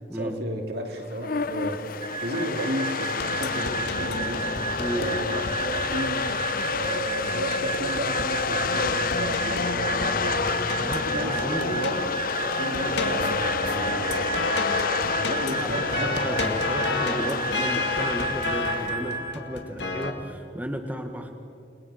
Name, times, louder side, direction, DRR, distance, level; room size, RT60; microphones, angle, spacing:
voice 1, 0.1-1.9 2.2-4.5 4.9-6.4 6.6-10.5 10.8-12.2 12.4-16.6, right 1 dB, 60° right, 3 dB, 2.7 m, -33 dB
sound 1, 1.0-18.9, left 5 dB, 50° left, 0.8 m, -29 dB
sound 2, 2.0-19.3, right 6 dB, 25° right, 0.6 m, -34 dB
sound 3, 3.2-20.1, left 2 dB, 75° left, 2.2 m, -32 dB
voice 2, 10.8-11.7 15.6-21.3, equal, 10° right, 3 dB, 1.5 m, -33 dB
29.5 x 20.0 x 6.4 m, 2.5 s
head